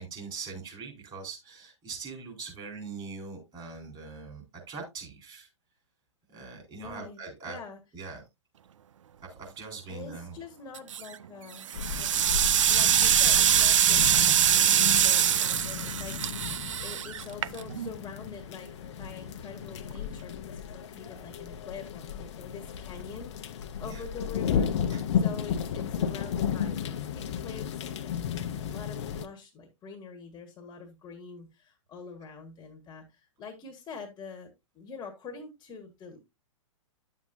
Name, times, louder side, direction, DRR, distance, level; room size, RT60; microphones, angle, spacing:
voice 1, 0.0-5.5 6.3-7.6 7.9-8.2 9.4-10.4 23.8-24.0 24.9-25.0, right 4 dB, 25° right, 1 dB, 4.1 m, -42 dB
voice 2, 6.7-7.2 7.5-7.8 9.9-11.7 12.0-24.7 25.1-34.5 34.7-36.2, left 5 dB, 20° left, 4 dB, 1.6 m, -45 dB
sound 1, 10.8-11.2 11.6-17.9, right 10 dB, 70° right, 0.5 m, -23 dB
sound 2, 11.7-29.3, left 8 dB, 55° left, 0.9 m, -34 dB
10.0 x 7.5 x 2.6 m, 0.22 s
hypercardioid pair, 120°, 17 cm